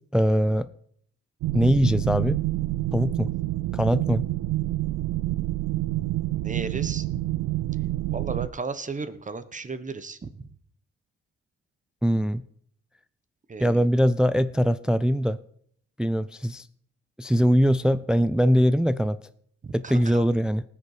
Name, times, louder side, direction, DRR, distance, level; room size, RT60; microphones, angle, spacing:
voice 1, 0.1-0.7 1.5-2.4 2.9-3.3 3.7-4.2 12.0-12.4 13.6-15.4 16.0-16.7 17.2-19.2 19.7-20.6, equal, 5° right, 0.4 m, -22 dB
sound 1, 1.4-8.5, right 17 dB, 75° right, 0.5 m, -28 dB
voice 2, 6.4-7.2 8.1-10.5 13.5-13.9 19.6-20.3, right 4 dB, 25° right, 1.1 m, -35 dB
19.0 x 6.8 x 4.9 m
cardioid pair, 90°, 30 cm